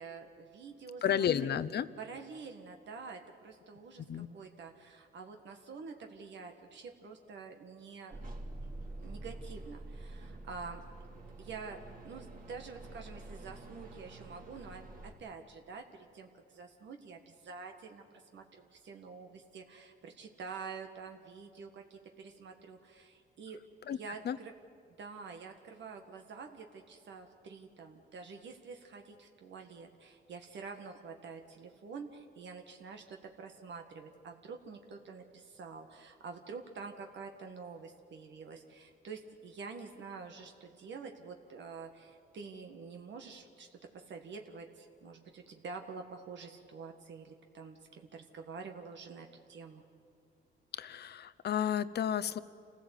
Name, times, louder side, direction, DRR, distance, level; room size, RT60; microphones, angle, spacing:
voice 1, 0.0-1.6 2.0-4.0 4.3-8.3 9.0-10.8 11.4-18.0 18.3-23.6 23.9-24.5 25.0-49.8, right 5 dB, 65° right, 4 dB, 1.7 m, -47 dB
voice 2, 1.0-1.9 4.1-4.3 23.9-24.4 50.7-52.4, left 9 dB, 55° left, 13 dB, 0.9 m, -32 dB
sound 1, 8.1-15.1, right 2 dB, 45° right, 3.4 m, -47 dB
27.5 x 16.0 x 8.3 m, 2.3 s
cardioid pair, 90°, 20 cm